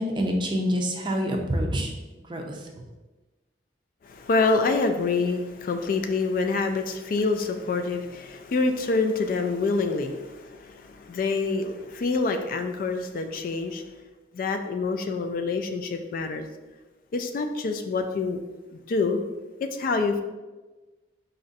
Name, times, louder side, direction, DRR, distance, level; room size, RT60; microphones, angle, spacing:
voice 1, 0.0-1.9 2.3-2.7, equal, 25° right, 2 dB, 0.5 m, -26 dB
voice 2, 4.0-13.8 14.3-16.5 17.1-18.4 18.7-19.2 19.6-20.2, left 3 dB, 50° left, 6 dB, 0.3 m, -26 dB
4.2 x 2.5 x 3.9 m, 1.2 s
head